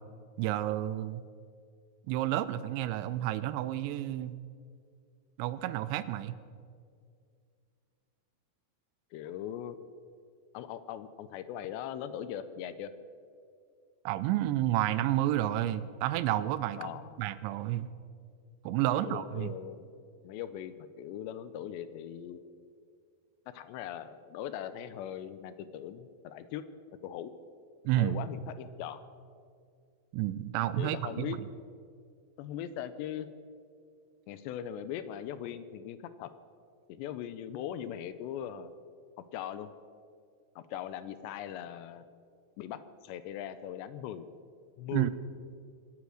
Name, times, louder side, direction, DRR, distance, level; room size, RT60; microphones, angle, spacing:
voice 1, 0.4-1.2 2.1-4.4 5.4-6.3 14.1-16.9 17.2-17.9 18.6-19.5 27.9-28.2 30.1-31.4 44.9-45.1, right 14 dB, 90° right, 13 dB, 2.9 m, -30 dB
voice 2, 9.1-9.8 10.5-12.9 16.8-17.2 18.9-19.9 20.2-22.4 23.5-26.7 27.0-27.3 28.0-29.0 30.8-31.4 32.4-33.3 34.3-36.3 36.9-38.7 39.3-39.7 40.6-42.1 42.6-44.3 44.8-45.1, left 10 dB, 80° left, 12 dB, 2.8 m, -40 dB
25.0 x 8.4 x 6.4 m, 2.2 s
omnidirectional pair, 5.2 m